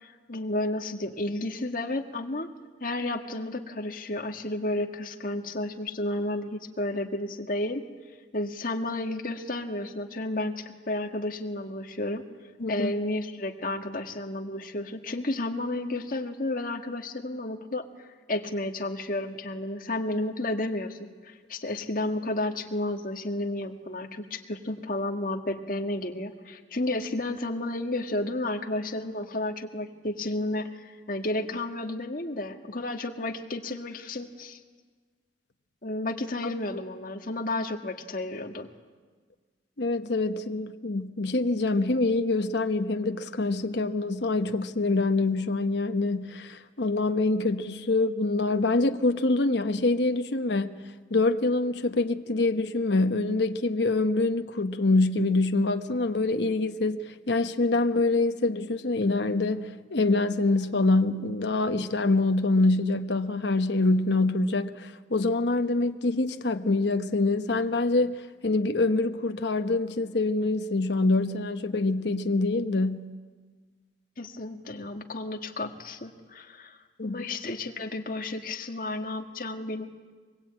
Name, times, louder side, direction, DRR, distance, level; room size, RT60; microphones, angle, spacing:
voice 1, 0.0-2.5 2.8-7.8 8.3-12.2 12.7-17.9 18.3-34.6 35.8-38.7 74.2-79.9, left 2 dB, 50° left, 1.8 m, -32 dB
voice 2, 12.6-12.9 39.8-50.8 51.1-73.0 77.0-77.2, left 2 dB, 70° left, 1.0 m, -25 dB
24.0 x 21.0 x 8.9 m
head